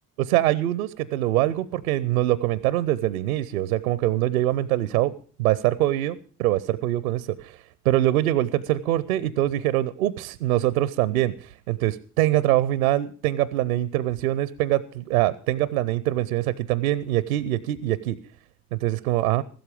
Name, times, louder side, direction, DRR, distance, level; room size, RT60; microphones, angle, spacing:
voice 1, 0.2-5.1 5.4-18.2 18.7-19.4, right 14 dB, 80° right, 20 dB, 0.5 m, -24 dB
15.0 x 12.5 x 5.0 m, 0.41 s
figure-of-eight pair, 45°, 41 cm